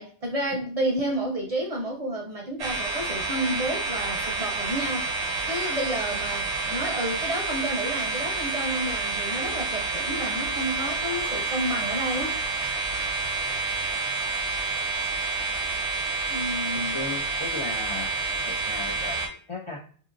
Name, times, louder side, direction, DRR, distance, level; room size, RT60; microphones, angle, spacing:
voice 1, 0.0-5.0 5.5-12.4 16.3-17.0, right 1 dB, 45° right, 0 dB, 0.5 m, -30 dB
sound 1, 2.6-19.3, right 3 dB, 90° right, 1.1 m, -29 dB
voice 2, 16.7-18.1 18.4-19.8, left 4 dB, 55° left, -1 dB, 0.3 m, -36 dB
2.7 x 2.6 x 2.5 m, 0.43 s
omnidirectional pair, 1.1 m